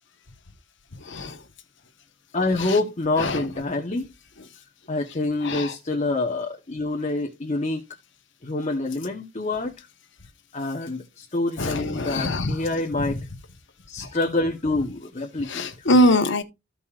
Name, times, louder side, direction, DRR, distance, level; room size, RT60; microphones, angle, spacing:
voice 1, 1.0-1.4 2.6-2.8 3.2-3.5 5.4-5.7 11.6-12.7 13.0-13.1 14.0-14.1 15.4-16.4, left 1 dB, 65° left, 1.2 m, -23 dB
voice 2, 2.3-4.1 4.9-7.8 8.4-9.7 10.5-13.2 13.9-15.9, left 2 dB, 35° left, 1.1 m, -26 dB
15.0 x 5.3 x 2.5 m
head